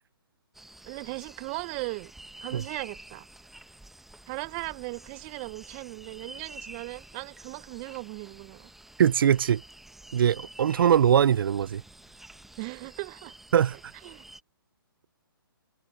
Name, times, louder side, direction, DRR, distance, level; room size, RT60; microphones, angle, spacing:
sound 1, 0.5-14.4, right 1 dB, ahead, 0.9 m, -49 dB
voice 1, 0.8-2.1 2.4-3.3 4.3-8.7 12.6-13.4 14.0-14.2, right 28 dB, 30° right, 0.7 m, -38 dB
voice 2, 9.0-9.6 10.1-11.8 13.5-13.8, right 9 dB, 70° right, 0.5 m, -21 dB
hypercardioid pair, 140°, 12 cm